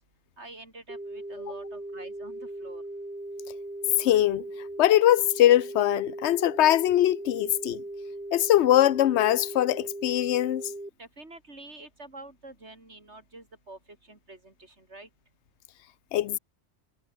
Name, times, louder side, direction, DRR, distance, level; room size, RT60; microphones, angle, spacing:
voice 1, 0.4-2.8 11.0-13.8 14.1-15.1, right 2 dB, 80° right, 5.4 m, -47 dB
sound 1, 0.9-10.9, right 1 dB, 55° right, 6.3 m, -39 dB
voice 2, 4.0-4.5 4.8-7.8 8.3-10.6 16.1-16.4, left 13 dB, 80° left, 0.9 m, -22 dB
omnidirectional pair, 1.1 m